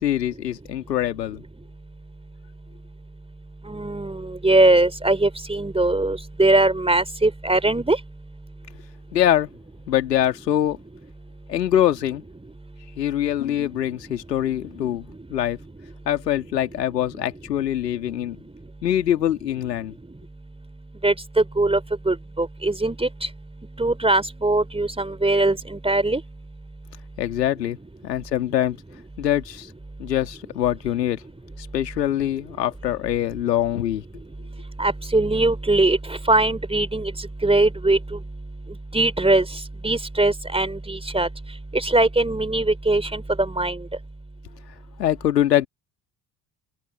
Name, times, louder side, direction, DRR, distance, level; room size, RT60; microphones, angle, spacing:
voice 1, 0.0-1.4 9.1-9.5 9.9-10.8 11.5-12.2 13.0-15.6 16.1-18.4 18.8-19.9 27.2-27.8 28.0-28.8 29.2-29.7 30.0-31.2 31.6-34.0 45.0-45.7, left 11 dB, 75° left, 2.6 m, -23 dB
voice 2, 3.7-8.0 21.0-21.8 22.0-23.1 23.8-26.2 34.8-37.1 37.4-38.0 38.9-39.4 39.8-41.3 41.7-43.8, right 2 dB, 10° right, 3.4 m, -21 dB
open air
figure-of-eight pair, 50°, 50 cm